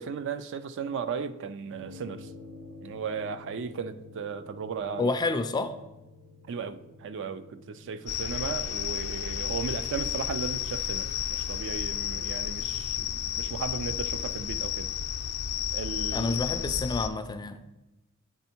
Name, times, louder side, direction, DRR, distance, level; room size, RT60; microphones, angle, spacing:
voice 1, 0.0-2.3 2.8-5.1 6.5-14.9 15.7-16.4, right 5 dB, 60° right, 0.4 m, -36 dB
sound 1, 1.7-16.3, left 2 dB, 85° right, 1.1 m, -52 dB
voice 2, 5.0-5.7 16.1-17.6, left 3 dB, 20° left, 0.3 m, -29 dB
sound 2, 8.1-17.1, left 9 dB, 90° left, 0.5 m, -32 dB
8.1 x 3.5 x 4.3 m
head